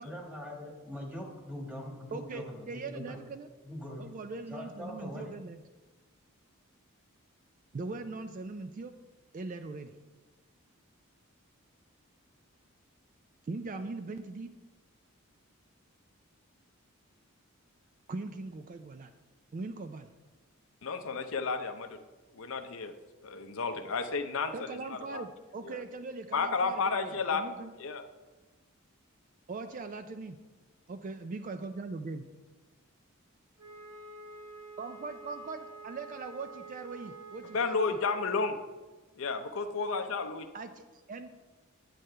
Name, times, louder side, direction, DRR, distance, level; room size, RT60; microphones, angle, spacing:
voice 1, 0.0-3.2 3.6-4.1 4.5-5.3, left 1 dB, 5° right, -1 dB, 1.6 m, -42 dB
voice 2, 2.1-3.5 4.0-5.6 7.7-9.0 9.3-9.9 13.4-14.5 18.1-19.1 19.5-20.1 24.5-27.7 29.5-30.4 30.9-32.2 34.8-38.0 40.5-41.3, right 3 dB, 40° right, 9 dB, 0.3 m, -40 dB
voice 3, 20.8-22.0 22.3-22.9 23.2-25.2 25.6-25.8 26.3-27.4 27.8-28.0 37.5-38.6 39.2-40.5, left 4 dB, 70° left, 7 dB, 0.6 m, -32 dB
Wind instrument woodwind instrument, 33.6-38.4, right 3 dB, 70° right, 2.2 m, -48 dB
10.5 x 7.7 x 3.3 m, 1.2 s
head